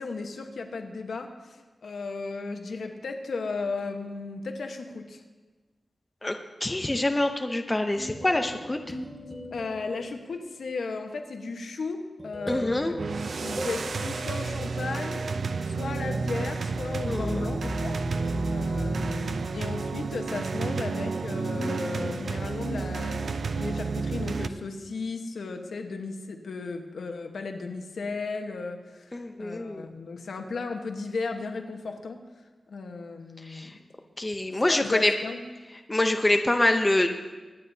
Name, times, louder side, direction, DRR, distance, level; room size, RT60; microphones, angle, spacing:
voice 1, 0.0-5.2 9.5-12.8 13.4-15.2 15.7-18.0 18.5-32.2 32.7-33.7 34.7-35.4, left 4 dB, 80° left, 4 dB, 1.1 m, -35 dB
voice 2, 6.2-8.8 12.5-12.9 17.1-17.5 29.1-29.9 33.4-33.7 34.2-35.1 35.9-37.2, left 1 dB, 20° left, 5 dB, 0.7 m, -25 dB
sound 1, 8.0-10.6 12.2-15.2 16.6-23.9, left 1 dB, 10° right, 2.0 m, -38 dB
sound 2, 13.0-24.5, right 4 dB, 70° right, 0.5 m, -31 dB
24.5 x 9.5 x 2.8 m, 1.3 s
wide cardioid pair, 130°, 0 cm